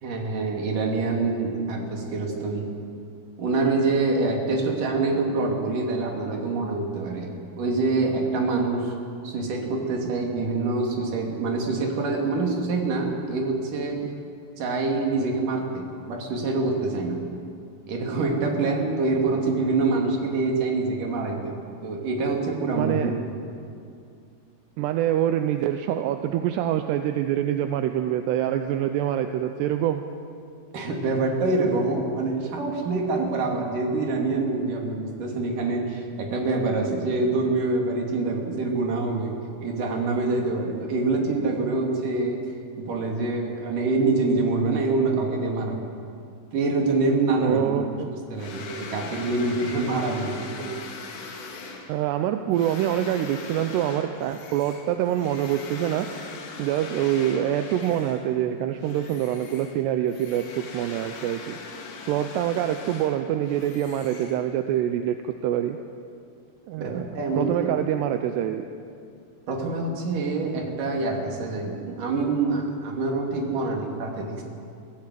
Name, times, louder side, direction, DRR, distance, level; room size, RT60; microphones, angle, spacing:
voice 1, 0.0-2.7 3.4-8.9 9.2-14.1 14.6-17.3 17.9-21.5 21.8-23.4 30.7-39.4 39.6-42.4 42.8-45.8 46.5-50.4 66.8-67.8 69.5-74.4, right 3 dB, 50° right, 0 dB, 4.0 m, -25 dB
voice 2, 22.8-23.1 24.8-30.1 47.4-48.1 50.6-50.9 51.9-56.1 56.6-61.6 62.1-65.8 66.7-67.1 67.4-68.7, right 11 dB, 80° right, 7 dB, 2.8 m, -25 dB
sound 1, 48.4-58.4 58.8-64.8, left 4 dB, 75° left, 4.3 m, -41 dB
25.5 x 15.5 x 7.6 m, 2.4 s
omnidirectional pair, 5.0 m